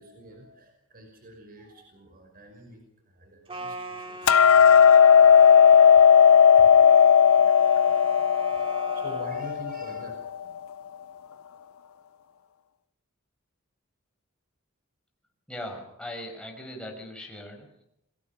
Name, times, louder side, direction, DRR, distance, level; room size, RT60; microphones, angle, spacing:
voice 1, 0.0-5.0 5.9-6.1 6.6-7.6 8.5-10.2, equal, 45° right, 2 dB, 5.7 m, -47 dB
sound 1, 3.5-9.5, right 2 dB, 25° right, 2.5 m, -40 dB
Hammer, 4.3-10.5, left 7 dB, 85° left, 0.8 m, -16 dB
voice 2, 15.5-17.8, left 1 dB, 5° left, 1 dB, 6.0 m, -39 dB
29.5 x 22.0 x 5.9 m, 0.79 s
head